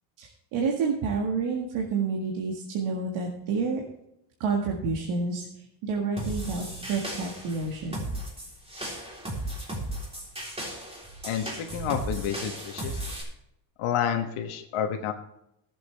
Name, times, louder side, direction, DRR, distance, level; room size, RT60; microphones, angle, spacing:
voice 1, 0.2-3.8 4.4-7.9, right 4 dB, 80° right, 0 dB, 1.9 m, -29 dB
sound 1, 6.2-13.2, right 1 dB, 10° right, 3.6 m, -36 dB
voice 2, 11.2-13.0 13.8-15.1, left 9 dB, 80° left, 3 dB, 1.4 m, -29 dB
18.5 x 7.6 x 3.4 m, 0.81 s
cardioid pair, 130°, 49 cm